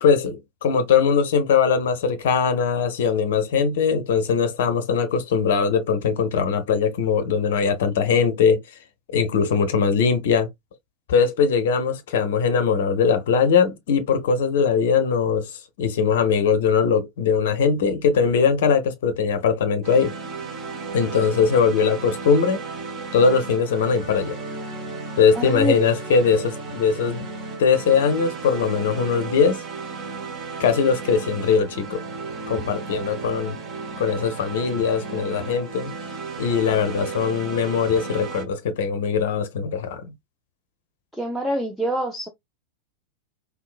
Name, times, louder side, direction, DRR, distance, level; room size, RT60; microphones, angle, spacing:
voice 1, 0.0-8.6 9.1-10.5 11.1-20.1 20.9-22.6 23.1-24.4 25.2-27.3 27.6-29.6 30.6-32.0 32.5-33.6 34.0-35.9 36.4-40.1, left 6 dB, 55° left, 0.6 m, -21 dB
sound 1, 19.8-38.4, right 4 dB, 30° right, 0.9 m, -34 dB
voice 2, 25.4-25.8 41.1-42.3, right 1 dB, ahead, 0.5 m, -25 dB
3.7 x 2.3 x 2.4 m
figure-of-eight pair, 90°, 0 cm